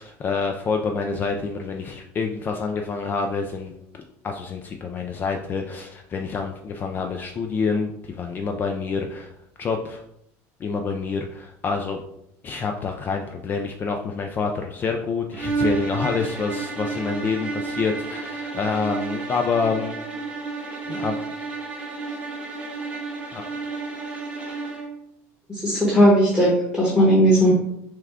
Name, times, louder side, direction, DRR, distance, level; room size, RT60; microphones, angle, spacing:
voice 1, 0.0-3.7 4.2-9.3 9.6-10.0 10.6-12.0 12.4-19.9 20.9-21.2 23.3-23.4, left 5 dB, 25° left, 3 dB, 0.4 m, -27 dB
sound 1, 15.3-25.0, right 4 dB, 15° right, 0.8 m, -31 dB
voice 2, 25.5-27.5, equal, 10° left, -5 dB, 1.2 m, -17 dB
5.9 x 2.3 x 3.6 m, 0.75 s
cardioid pair, 140°, 7 cm